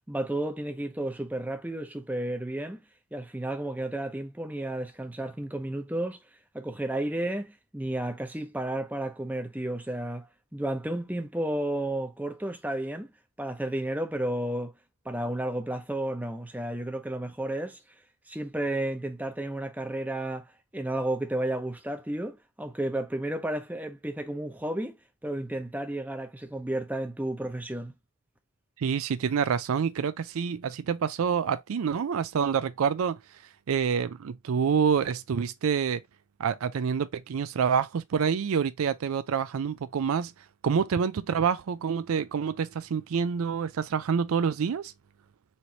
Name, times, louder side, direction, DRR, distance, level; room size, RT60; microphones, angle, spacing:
voice 1, 0.1-2.8 3.1-6.2 6.5-10.3 10.5-13.1 13.4-14.7 15.0-17.8 18.3-27.9, right 1 dB, 10° right, 0.7 m, -32 dB
voice 2, 28.8-33.2 33.7-36.0 36.4-40.3 40.6-44.9, right 6 dB, 80° right, 0.4 m, -27 dB
4.3 x 3.1 x 2.9 m
head